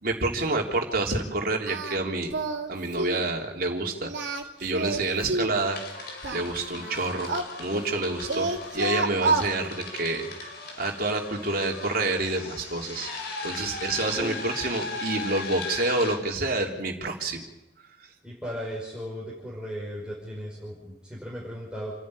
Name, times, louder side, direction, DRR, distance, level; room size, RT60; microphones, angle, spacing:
voice 1, 0.0-2.4 2.7-4.1 4.6-7.3 7.6-10.5 10.8-13.1 13.4-17.4, right 2 dB, 55° right, 1 dB, 3.6 m, -28 dB
Singing, 1.7-2.0 2.3-2.7 3.0-3.3 4.0-5.6 6.2-8.0 8.3-9.5, right 3 dB, 85° right, 2.7 m, -29 dB
sound 1, 4.0-4.1 4.4-5.2 5.5-16.2, left 4 dB, 60° left, 4.7 m, -38 dB
voice 2, 18.2-21.9, equal, 5° right, -6 dB, 5.7 m, -36 dB
29.0 x 11.0 x 9.9 m, 1.0 s
head